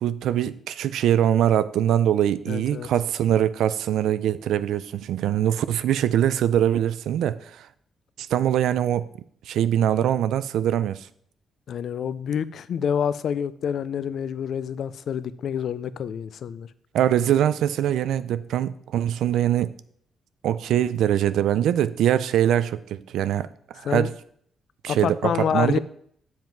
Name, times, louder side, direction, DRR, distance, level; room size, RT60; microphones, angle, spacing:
voice 1, 0.0-7.7 8.2-9.1 9.5-11.1 16.9-19.7 20.4-23.5 23.8-24.1 24.8-25.8, right 10 dB, 90° right, 15 dB, 0.4 m, -23 dB
voice 2, 2.5-2.9 11.7-16.7 23.8-24.1 24.9-25.8, left 8 dB, 60° left, 16 dB, 0.4 m, -27 dB
7.5 x 7.4 x 4.6 m, 0.64 s
cardioid pair, 160°, 0 cm